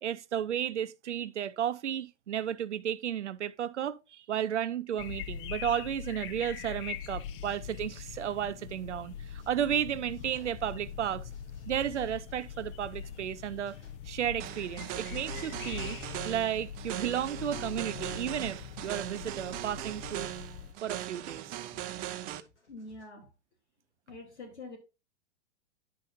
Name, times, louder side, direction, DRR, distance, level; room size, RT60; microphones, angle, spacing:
voice 1, 0.0-11.3 11.7-13.8 14.0-16.0 16.2-20.3 20.8-21.5, right 10 dB, 85° right, 0.6 m, -33 dB
sound 1, 5.0-20.7, left 9 dB, 50° left, 0.8 m, -42 dB
sound 2, 9.4-23.1, left 3 dB, 90° left, 2.7 m, -60 dB
sound 3, 14.4-22.4, right 13 dB, 25° right, 0.5 m, -40 dB
voice 2, 22.7-23.3 24.1-24.8, left 2 dB, 75° left, 3.7 m, -45 dB
10.5 x 5.2 x 2.6 m
hypercardioid pair, 115°, 34 cm